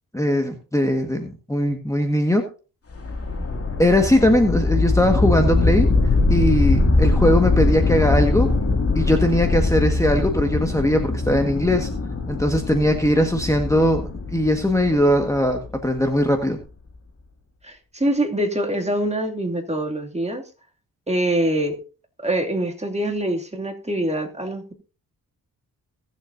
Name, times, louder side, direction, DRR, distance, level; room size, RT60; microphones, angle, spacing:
voice 1, 0.1-2.4 3.8-5.9 6.3-8.5 9.0-11.9 12.3-14.0 14.3-16.6, left 1 dB, 10° left, 4 dB, 1.6 m, -20 dB
sound 1, 2.9-16.0, left 3 dB, 40° left, 2.4 m, -22 dB
voice 2, 17.6-20.4 21.1-21.8 22.2-24.7, right 1 dB, 15° right, 2 dB, 2.6 m, -24 dB
21.5 x 7.5 x 2.7 m, 0.35 s
cardioid pair, 60°, 37 cm